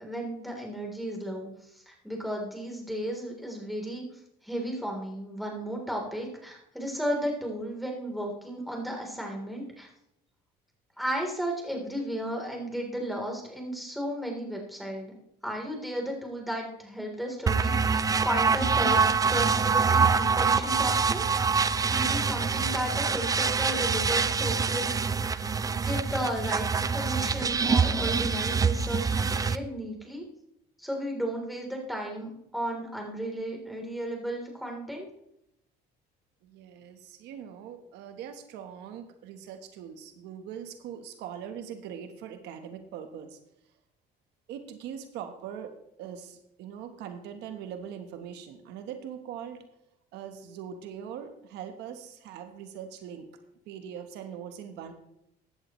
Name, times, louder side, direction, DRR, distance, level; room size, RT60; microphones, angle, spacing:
voice 1, 0.0-4.1 4.4-9.9 11.0-15.1 15.4-21.2 21.6-25.0 25.3-25.4 25.7-30.2 30.8-35.1, equal, ahead, 0 dB, 3.4 m, -34 dB
sound 1, 17.5-29.6, right 5 dB, 20° right, 0.4 m, -25 dB
voice 2, 36.4-43.4 44.5-49.6 50.1-53.3 53.7-54.9, right 8 dB, 90° right, 7 dB, 1.2 m, -41 dB
15.0 x 11.0 x 3.1 m, 0.80 s
cardioid pair, 110°, 17 cm